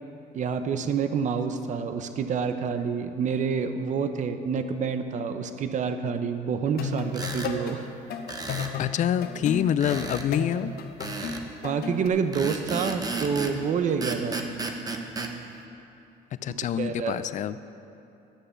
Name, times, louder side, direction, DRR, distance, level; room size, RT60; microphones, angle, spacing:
voice 1, 0.3-7.9 11.2-11.4 11.6-14.5 16.8-17.2, right 6 dB, 45° right, 9 dB, 0.7 m, -28 dB
sound 1, 6.7-7.8 8.1-12.1, left 6 dB, 65° left, 1.0 m, -33 dB
sound 2, 7.1-7.5 8.3-8.8 9.8-10.3 11.0-11.5 12.3-13.6 14.0-15.3, right 3 dB, 20° right, 1.0 m, -33 dB
voice 2, 8.8-10.7 16.4-17.6, left 9 dB, 45° left, 15 dB, 0.4 m, -26 dB
11.5 x 6.7 x 7.1 m, 2.9 s
cardioid pair, 110°, 17 cm